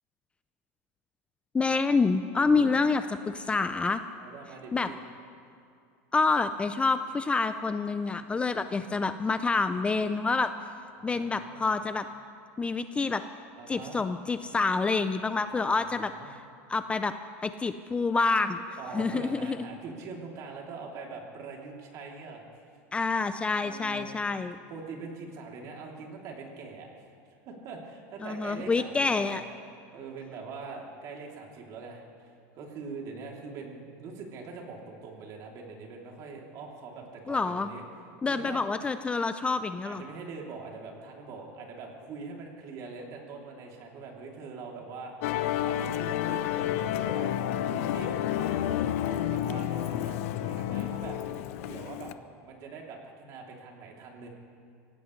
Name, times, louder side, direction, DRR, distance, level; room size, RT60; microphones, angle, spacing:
voice 1, 1.5-4.0 4.7-4.9 6.1-10.5 11.0-12.1 12.6-13.2 13.7-16.1 16.7-17.1 17.4-18.6 18.9-19.7 22.9-24.6 28.2-29.4 37.3-37.7 38.2-40.0, left 4 dB, 15° left, 10 dB, 0.5 m, -27 dB
voice 2, 2.4-2.8 4.1-5.0 8.4-9.2 10.9-11.6 13.6-14.0 15.5-16.3 18.8-22.4 23.5-24.1 24.7-27.1 27.4-29.4 29.9-37.8 38.2-38.6 39.8-47.4 47.7-52.1 52.4-54.3, right 4 dB, 50° right, 0 dB, 3.0 m, -43 dB
Musical instrument, 45.2-52.1, left 12 dB, 75° left, 0.7 m, -30 dB
25.0 x 17.0 x 3.2 m, 2.4 s
supercardioid pair, 120°, 8 cm